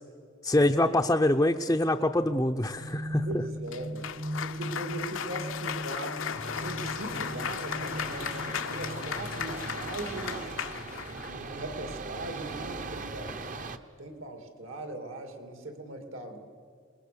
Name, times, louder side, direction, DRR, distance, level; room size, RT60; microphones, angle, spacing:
voice 1, 0.4-3.3, left 1 dB, 15° left, 2 dB, 0.5 m, -24 dB
sound 1, 2.2-10.0, equal, 55° right, 2.1 m, -39 dB
voice 2, 3.2-4.1 4.4-6.2 6.5-10.6 11.2-13.5 14.0-16.4, right 2 dB, 70° right, 6 dB, 2.6 m, -39 dB
Cheering / Applause, 3.7-11.4, left 8 dB, 70° left, 0.6 m, -36 dB
sound 2, 6.3-13.8, right 3 dB, 35° right, 0.9 m, -40 dB
28.5 x 20.5 x 6.9 m, 2.2 s
head